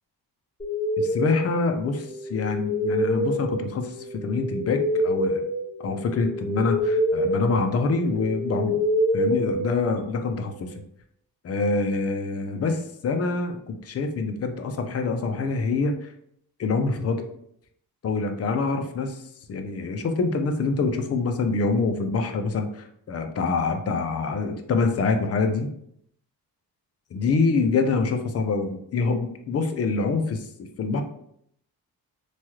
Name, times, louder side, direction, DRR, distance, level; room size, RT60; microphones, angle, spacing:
sound 1, 0.6-10.3, equal, 25° left, 1.0 m, -27 dB
voice 1, 1.0-5.4 5.8-8.8 9.1-10.7 11.4-16.1 16.6-17.3 18.0-19.2 19.5-25.7 27.1-31.0, left 4 dB, 40° left, 6 dB, 0.5 m, -25 dB
3.1 x 2.3 x 2.9 m, 0.70 s
cardioid pair, 100°, 38 cm